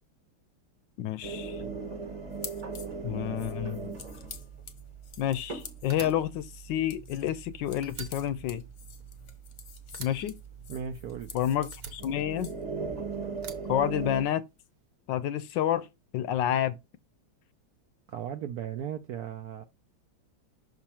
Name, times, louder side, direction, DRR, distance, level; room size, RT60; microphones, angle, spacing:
voice 1, 1.0-1.6 3.0-3.9 5.2-8.6 10.0-10.4 11.3-12.5 13.7-14.4 15.1-15.9 16.1-16.8, left 11 dB, 75° left, 1.2 m, -29 dB
sound 1, 1.2-14.2, right 5 dB, 25° right, 1.1 m, -40 dB
sound 2, 2.3-12.6, left 7 dB, 50° left, 0.9 m, -49 dB
Fire, 5.9-7.5 7.8-9.6 9.9-11.3 11.7-12.9 13.4-14.6, right 6 dB, 55° right, 1.2 m, -46 dB
voice 2, 10.7-11.3 18.1-19.6, right 8 dB, 75° right, 0.9 m, -37 dB
6.4 x 4.0 x 4.3 m
omnidirectional pair, 2.2 m